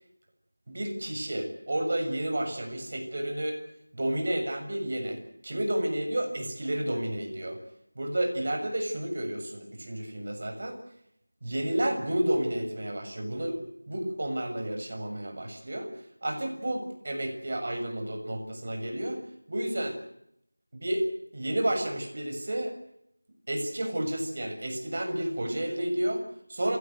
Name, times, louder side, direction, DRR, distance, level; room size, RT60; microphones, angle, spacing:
voice 1, 0.7-3.6 3.9-7.6 7.9-10.8 11.4-20.0 20.7-22.7 23.5-26.8, right 1 dB, 45° right, 5 dB, 6.8 m, -31 dB
28.5 x 17.5 x 8.0 m, 0.75 s
figure-of-eight pair, 170°, 0 cm